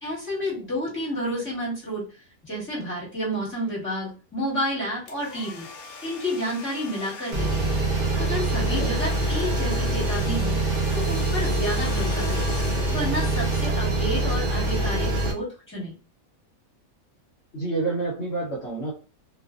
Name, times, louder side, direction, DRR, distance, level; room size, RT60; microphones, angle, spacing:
voice 1, 0.0-2.1 2.5-5.7 6.0-7.7 8.2-10.6 10.9-12.5 12.9-15.9, equal, 10° left, -6 dB, 1.3 m, -30 dB
Domestic sounds home sounds, 5.1-14.2, left 5 dB, 80° left, 1.1 m, -41 dB
sound 1, 7.3-15.3, right 2 dB, 55° right, 0.6 m, -24 dB
voice 2, 8.6-8.9 17.5-18.9, right 3 dB, 55° left, -5 dB, 1.0 m, -29 dB
2.5 x 2.5 x 2.4 m, 0.35 s
omnidirectional pair, 1.6 m